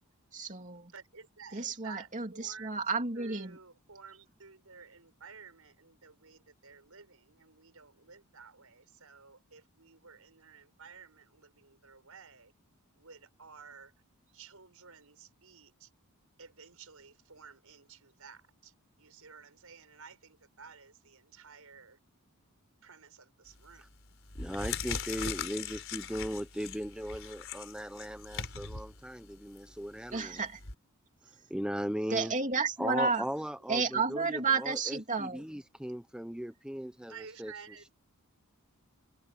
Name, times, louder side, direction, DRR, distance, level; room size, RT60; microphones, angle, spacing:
voice 1, 0.3-0.9 1.5-3.6 30.1-30.6 32.1-33.3 33.7-35.5, right 4 dB, 35° right, 2.9 m, -32 dB
voice 2, 0.9-2.8 3.1-12.5 12.9-13.9 14.3-15.9 16.4-22.0 22.8-23.9 37.1-37.9, right 5 dB, 70° right, 5.9 m, -53 dB
sound 1, 23.5-23.8 24.2-30.7, left 6 dB, 60° left, 4.6 m, -40 dB
voice 3, 24.4-30.4 31.5-32.3 32.8-37.5, equal, 5° right, 0.9 m, -38 dB
head